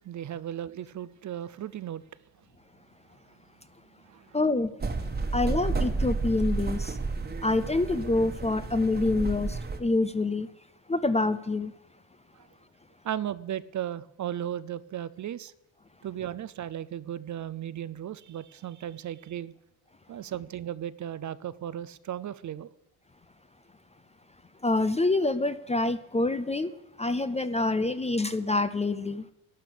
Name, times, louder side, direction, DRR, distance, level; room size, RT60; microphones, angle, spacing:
voice 1, 0.0-2.0 4.1-4.3 13.0-15.5 16.0-19.5 20.1-22.7, right 10 dB, 40° right, 0.5 m, -36 dB
voice 2, 4.3-4.7 5.3-7.0 7.4-10.5 10.9-11.7 24.6-26.7 27.0-29.2, left 2 dB, 15° left, 0.4 m, -26 dB
sound 1, 4.8-9.8, right 3 dB, 20° right, 1.3 m, -31 dB
12.5 x 10.5 x 6.8 m
cardioid pair, 130°, 45 cm